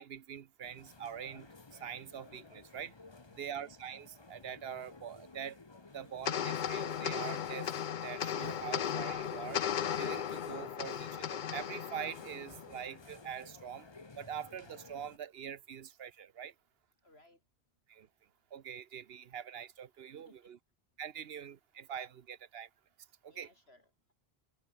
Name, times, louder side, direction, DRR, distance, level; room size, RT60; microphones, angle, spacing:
voice 1, 0.0-1.5 1.8-2.9 3.4-5.6 5.9-7.7 8.0-9.6 10.0-13.9 14.2-16.5 17.9-18.1 18.5-20.3 21.0-22.7 23.2-23.5, right 8 dB, 70° right, 1.0 m, -44 dB
sound 1, 0.6-15.2, left 3 dB, 25° left, 1.1 m, -56 dB
sound 2, 6.3-12.9, left 9 dB, 55° left, 0.7 m, -36 dB
voice 2, 17.0-17.4 20.2-20.5 23.3-24.1, left 1 dB, 80° left, 6.3 m, -64 dB
omnidirectional pair, 1.1 m